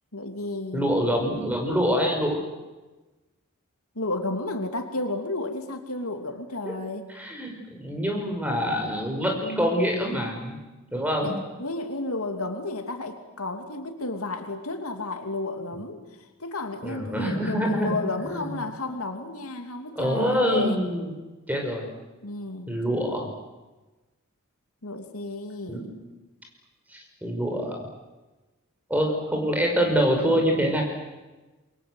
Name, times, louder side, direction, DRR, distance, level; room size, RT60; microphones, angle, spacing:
voice 1, 0.1-0.9 3.9-7.1 11.2-16.0 16.4-20.8 22.2-22.7 24.8-25.9, left 2 dB, 80° left, 5 dB, 2.9 m, -32 dB
voice 2, 0.7-2.4 7.2-10.5 10.9-11.3 16.8-18.6 20.0-21.1 21.5-21.8 22.7-23.3 25.7-25.9 26.9-27.7 28.9-30.8, equal, 5° right, 2 dB, 5.7 m, -25 dB
28.5 x 23.5 x 8.1 m, 1.1 s
head